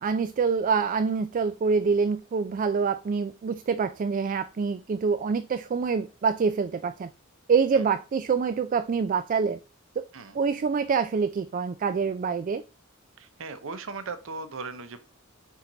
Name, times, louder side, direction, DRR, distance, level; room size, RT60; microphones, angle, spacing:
voice 1, 0.0-7.1 7.5-9.6 10.0-10.1 10.3-12.6, right 5 dB, 40° right, 0.3 m, -26 dB
voice 2, 13.2-15.0, right 4 dB, 65° right, 0.7 m, -37 dB
5.6 x 4.5 x 3.8 m
head